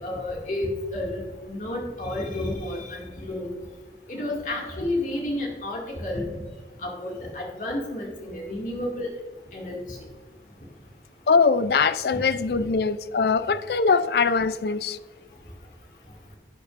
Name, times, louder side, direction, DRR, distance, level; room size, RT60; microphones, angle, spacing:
voice 1, 0.0-3.5 4.1-6.4 6.8-9.1 9.5-10.0, left 1 dB, 45° left, -2 dB, 2.3 m, -31 dB
voice 2, 11.3-15.0, left 5 dB, 60° left, 14 dB, 0.4 m, -22 dB
11.5 x 8.6 x 2.6 m, 1.4 s
head